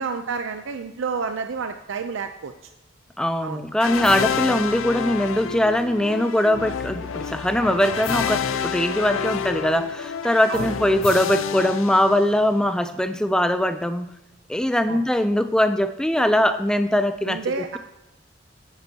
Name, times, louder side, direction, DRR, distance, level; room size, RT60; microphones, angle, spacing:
voice 1, 0.0-2.5 3.4-3.6 10.5-10.7 14.9-15.0 17.3-17.8, right 5 dB, 75° right, 7 dB, 0.5 m, -29 dB
voice 2, 3.2-14.1 14.5-17.4, left 1 dB, 5° left, 10 dB, 0.3 m, -21 dB
sound 1, 3.8-12.7, left 6 dB, 90° left, 0.5 m, -29 dB
9.5 x 8.9 x 2.8 m, 0.95 s
head